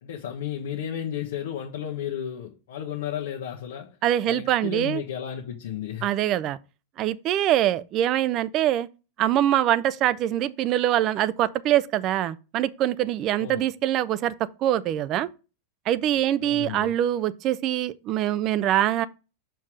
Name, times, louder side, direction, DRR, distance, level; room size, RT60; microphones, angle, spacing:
voice 1, 0.0-4.0 4.2-6.1 13.4-13.6 16.4-16.9, left 9 dB, 80° left, 1.0 m, -33 dB
voice 2, 4.0-5.0 6.0-6.6 7.0-8.9 9.2-15.3 15.9-19.1, right 12 dB, 40° right, 0.5 m, -24 dB
6.0 x 4.6 x 4.7 m
hypercardioid pair, 125°, 0 cm